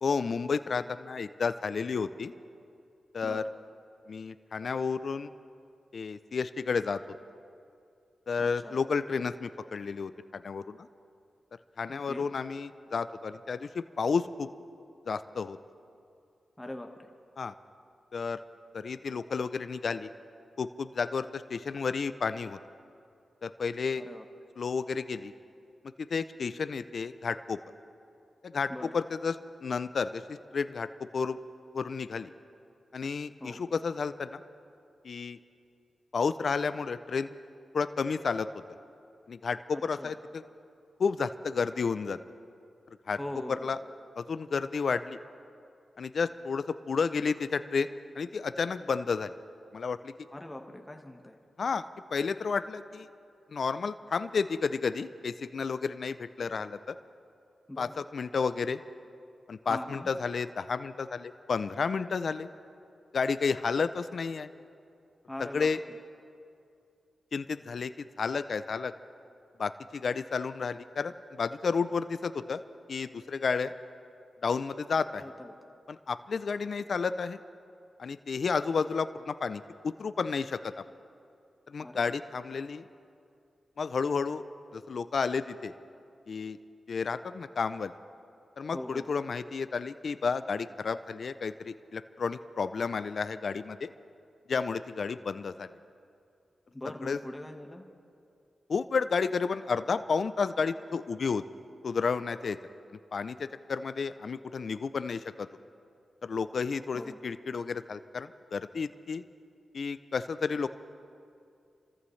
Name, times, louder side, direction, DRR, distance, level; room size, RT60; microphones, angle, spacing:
voice 1, 0.0-2.3 3.1-3.4 4.1-5.3 5.9-7.0 8.3-10.9 11.8-14.5 15.1-15.6 17.4-17.5 18.1-18.4 18.7-20.1 20.6-22.6 23.4-24.0 24.6-25.3 26.0-27.6 28.4-29.4 29.6-30.9 31.1-31.4 31.7-32.3 32.9-34.4 35.0-35.4 36.1-37.3 37.7-38.5 39.3-40.4 41.0-42.2 43.1-43.2 43.5-43.8 44.2-45.2 46.0-47.9 48.2-49.3 49.7-50.1 51.6-51.8 52.1-53.1 53.5-57.0 57.8-58.8 59.5-62.5 63.1-64.5 65.5-65.8 67.3-68.9 69.6-72.6 72.9-73.7 74.4-75.2 75.9-77.4 78.0-80.7 81.7-82.9 83.8-84.4 84.7-85.7 86.3-86.6 86.9-87.9 88.6-93.9 94.5-95.7 97.0-97.2 98.7-101.4 101.8-102.6 103.1-105.5 106.2-109.2 109.7-110.7, left 5 dB, 65° left, 12 dB, 0.4 m, -31 dB
voice 2, 8.4-8.7 11.9-12.3 16.6-17.1 24.0-24.2 28.7-28.9 33.4-33.6 39.7-40.1 43.2-43.7 50.3-51.4 57.7-57.9 59.7-60.1 65.3-66.0 75.2-75.5 81.8-82.2 88.7-89.1 96.7-97.8 106.9-107.2, left 1 dB, 15° left, 3 dB, 1.4 m, -42 dB
27.5 x 14.5 x 3.2 m, 2.5 s
cardioid pair, 55°, 0 cm